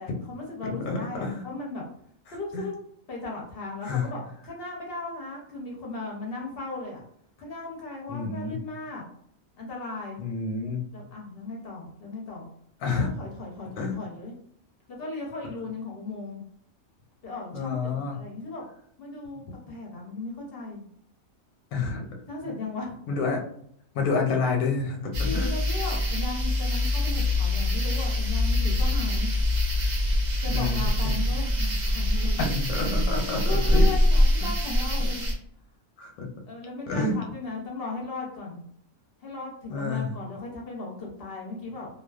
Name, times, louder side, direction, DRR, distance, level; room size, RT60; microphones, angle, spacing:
voice 1, 0.0-1.8 2.3-2.7 3.1-7.1 7.4-9.0 9.6-10.2 10.9-12.5 13.2-14.3 14.9-16.4 17.2-18.6 19.0-20.8 22.3-23.0 25.2-29.3 30.4-32.4 32.8-35.3 36.5-38.6 39.2-41.9, left 3 dB, 55° left, -1 dB, 0.6 m, -36 dB
voice 2, 0.6-1.4 2.3-2.6 3.8-4.1 8.1-8.6 10.2-10.8 12.8-13.1 13.8-14.0 17.5-18.2 21.7-22.0 22.4-22.6 23.1-23.5 23.9-25.5 30.5-31.2 32.4-33.9 34.4-34.5 36.0-36.3 36.9-37.1 39.7-40.1, left 4 dB, 90° left, 1 dB, 1.1 m, -29 dB
sound 1, 25.1-35.3, left 1 dB, 75° right, 0.4 m, -24 dB
2.4 x 2.3 x 2.3 m, 0.67 s
omnidirectional pair, 1.5 m